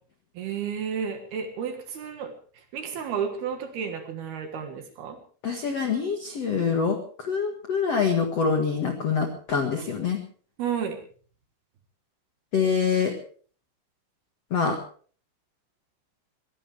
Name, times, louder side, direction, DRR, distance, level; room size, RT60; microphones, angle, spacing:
voice 1, 0.4-2.3 2.7-5.2 10.6-11.0, right 7 dB, 60° right, 6 dB, 3.1 m, -31 dB
voice 2, 5.4-10.2 12.5-13.1 14.5-14.8, left 5 dB, 70° left, 4 dB, 1.5 m, -25 dB
23.0 x 16.5 x 3.4 m, 0.44 s
omnidirectional pair, 5.9 m